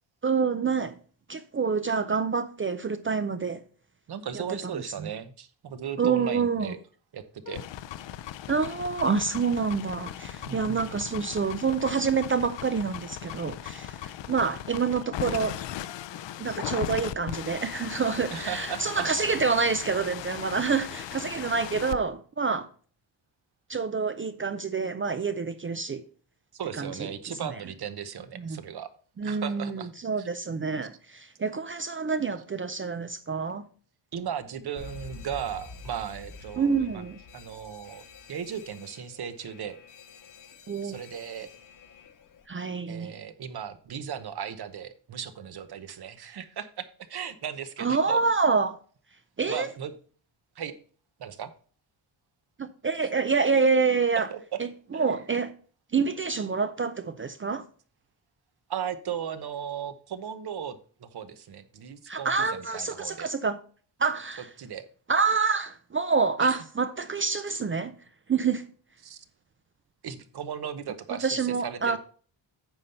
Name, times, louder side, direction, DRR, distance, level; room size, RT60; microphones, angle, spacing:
voice 1, 0.2-1.0 1.3-3.6 4.3-4.4 4.7-5.1 6.0-6.7 8.5-15.6 16.4-22.7 23.7-26.0 26.8-27.1 28.4-28.6 29.2-33.7 36.6-37.2 40.7-41.0 42.5-43.1 47.8-48.8 49.4-49.7 52.6-54.3 54.6-55.5 55.9-57.6 62.1-63.6 64.0-64.5 65.1-67.9 68.3-68.6 71.2-72.0, right 5 dB, 30° right, 0.4 m, -27 dB
voice 2, 4.1-6.8 7.1-7.6 10.4-11.1 18.3-19.1 26.5-28.9 29.2-29.9 30.2-30.3 34.1-37.0 37.3-39.8 40.8-41.5 42.9-48.2 49.5-49.9 50.6-50.7 51.2-51.5 54.3-54.4 54.9-55.1 58.7-63.3 64.6-64.9 66.4-66.6 69.0-69.2 70.0-72.0, right 8 dB, 55° right, 1.0 m, -36 dB
sound 1, 7.5-22.0, left 12 dB, 65° left, 0.6 m, -38 dB
Alarm, 34.8-42.5, left 4 dB, 45° left, 0.8 m, -48 dB
9.0 x 5.5 x 4.2 m
wide cardioid pair, 170°, 47 cm